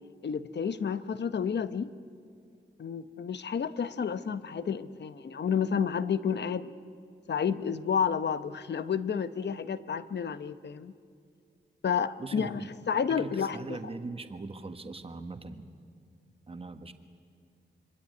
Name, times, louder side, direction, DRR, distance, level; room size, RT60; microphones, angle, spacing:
voice 1, 0.2-1.9 2.8-6.7 7.3-10.9 11.8-13.8, left 7 dB, 65° left, 13 dB, 0.9 m, -30 dB
voice 2, 12.2-15.7 16.5-16.9, right 3 dB, 30° right, 8 dB, 1.4 m, -41 dB
26.0 x 24.0 x 9.5 m, 2.3 s
wide cardioid pair, 150°, 19 cm